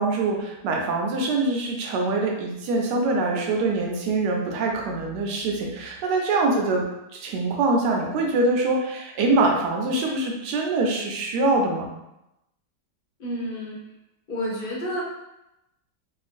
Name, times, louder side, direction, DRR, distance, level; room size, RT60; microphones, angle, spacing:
voice 1, 0.0-6.9 7.1-11.9, right 2 dB, 80° right, 0 dB, 1.2 m, -24 dB
voice 2, 13.2-13.8 14.3-15.0, equal, 40° left, -6 dB, 0.9 m, -29 dB
2.9 x 2.5 x 2.5 m, 0.88 s
omnidirectional pair, 1.8 m